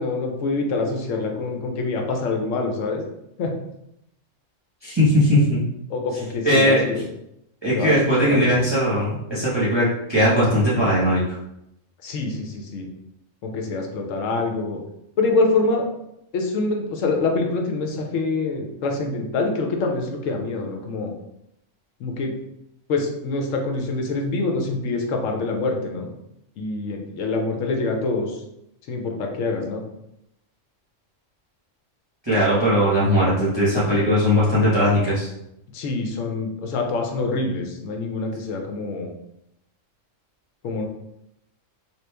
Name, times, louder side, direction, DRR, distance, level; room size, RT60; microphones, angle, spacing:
voice 1, 0.0-3.0 3.4-3.5 5.9-7.0 7.7-8.5 12.0-12.9 13.4-14.8 15.2-15.9 16.3-21.1 22.0-22.3 22.9-26.1 26.6-28.4 28.9-29.8 35.7-39.1 40.6-40.9, left 3 dB, 90° left, 2 dB, 1.0 m, -25 dB
voice 2, 4.8-5.6 6.4-6.8 7.6-11.2 32.2-35.3, equal, 25° right, -9 dB, 0.8 m, -19 dB
3.0 x 2.5 x 3.3 m, 0.82 s
omnidirectional pair, 1.3 m